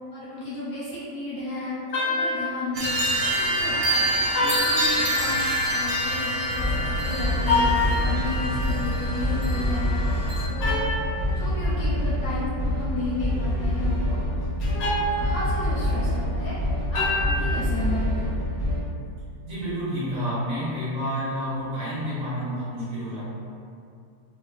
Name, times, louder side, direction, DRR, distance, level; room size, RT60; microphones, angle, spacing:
voice 1, 0.1-2.9 3.2-5.4 5.7-9.9 10.5-10.9 11.4-14.2 14.6-14.9 15.1-16.6 16.9-18.6, left 2 dB, 70° left, -8 dB, 0.9 m, -34 dB
sound 1, 1.9-2.7 4.4-5.5 7.4-8.4 10.6-11.2 14.6-15.9 16.9-17.7, left 2 dB, 85° left, 1.2 m, -27 dB
sound 2, 2.7-10.5, right 1 dB, 90° right, 1.3 m, -26 dB
sound 3, 6.5-18.8, left 1 dB, 40° left, 0.5 m, -26 dB
voice 2, 8.1-8.6 19.4-23.3, equal, 60° right, -10 dB, 1.0 m, -30 dB
3.1 x 2.5 x 2.3 m, 2.4 s
omnidirectional pair, 1.9 m